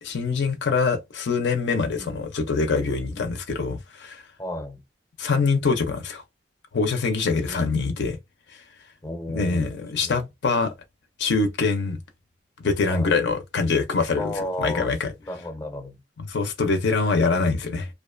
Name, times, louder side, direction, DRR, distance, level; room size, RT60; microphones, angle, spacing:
voice 1, 0.0-4.2 5.2-6.2 6.7-8.2 9.3-10.7 11.2-12.0 12.6-14.3 14.6-15.1 16.2-17.9, left 4 dB, 75° left, 0.5 m, -24 dB
voice 2, 1.9-2.3 3.1-3.4 4.4-4.8 7.4-7.9 9.0-10.3 12.8-13.2 14.2-14.9 15.3-16.0, left 1 dB, 20° left, 0.5 m, -34 dB
2.4 x 2.1 x 2.4 m
head